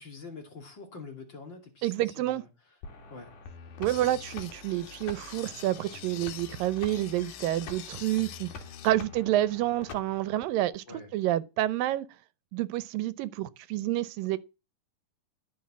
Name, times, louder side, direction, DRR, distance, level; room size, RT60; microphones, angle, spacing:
voice 1, 0.0-2.5 3.1-3.4 3.8-4.2 10.9-11.1, left 4 dB, 35° left, 2.8 m, -46 dB
voice 2, 1.8-2.4 3.8-8.5 8.8-12.1 12.5-14.4, right 14 dB, 80° right, 2.5 m, -29 dB
sound 1, 2.8-10.4, left 5 dB, 65° left, 3.6 m, -46 dB
sound 2, 3.9-8.9, left 11 dB, 85° left, 2.8 m, -46 dB
14.0 x 6.4 x 7.4 m
omnidirectional pair, 4.0 m